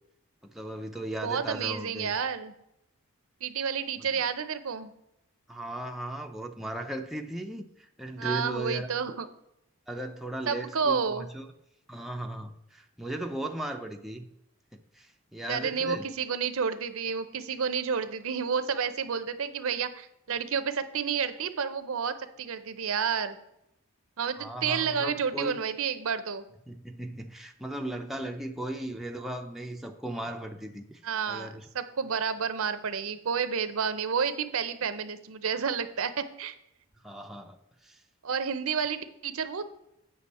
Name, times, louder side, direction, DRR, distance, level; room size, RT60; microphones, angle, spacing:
voice 1, 0.4-2.2 4.0-4.2 5.5-8.9 9.9-11.5 11.9-14.3 14.9-16.1 24.4-25.6 26.7-31.0 31.3-31.7 37.0-37.6 37.8-38.0, right 1 dB, ahead, 2 dB, 0.5 m, -37 dB
voice 2, 1.2-2.5 3.4-4.9 8.2-9.3 10.5-11.3 15.5-23.4 24.2-26.4 31.0-36.5 38.2-39.6, right 6 dB, 65° right, 12 dB, 0.6 m, -30 dB
8.4 x 6.0 x 4.2 m, 0.82 s
head